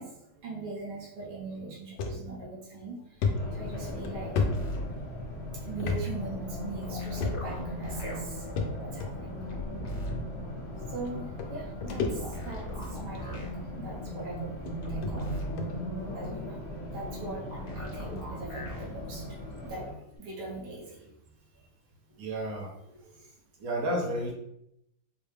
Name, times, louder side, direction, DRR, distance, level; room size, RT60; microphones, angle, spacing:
voice 1, 0.0-4.4 4.6-5.0 5.4-9.5 9.8-9.9 10.7-21.1 21.5-21.6 22.1-22.2 22.9-23.2, right 3 dB, 75° right, -4 dB, 1.7 m, -42 dB
sound 1, 2.0-2.2 2.6-2.7 3.2-5.3 5.8-6.0 6.3-6.4 7.2-7.7 8.6-9.1 10.0-10.1 11.1-11.2 11.4-12.6 13.0-13.3 14.1-14.2 14.7-14.8 15.0-15.1 15.6-15.8, left 4 dB, 80° left, 1.2 m, -31 dB
Race car auto racing, 3.3-19.9, equal, 40° left, 1.3 m, -38 dB
sound 2, 4.4-4.8 6.8-8.2 9.5-10.2 12.2-13.5 14.8-15.5 17.5-18.9 20.2-20.3, equal, 60° left, 1.4 m, -39 dB
voice 2, 22.2-22.7 23.6-24.3, right 1 dB, 60° right, 0 dB, 1.2 m, -31 dB
4.6 x 2.1 x 3.3 m, 0.79 s
omnidirectional pair, 1.8 m